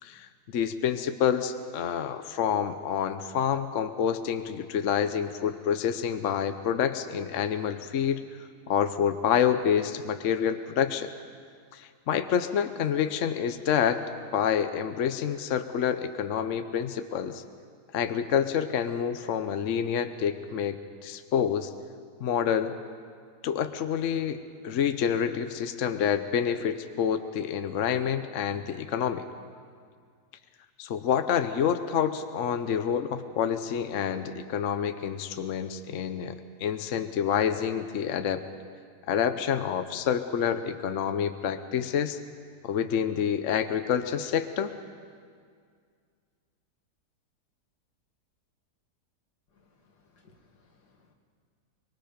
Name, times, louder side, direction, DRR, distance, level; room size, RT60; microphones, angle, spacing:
voice 1, 0.0-8.2 8.7-11.1 11.7-14.0 14.3-17.4 17.9-20.8 21.0-21.7 22.2-22.7 23.4-29.3 30.8-38.4 39.1-42.2 42.6-44.8, left 8 dB, 60° left, 9 dB, 1.0 m, -28 dB
voice 2, 49.5-51.1, left 3 dB, 80° left, 3 dB, 2.4 m, -63 dB
24.0 x 23.0 x 5.1 m, 2.1 s
omnidirectional pair, 1.7 m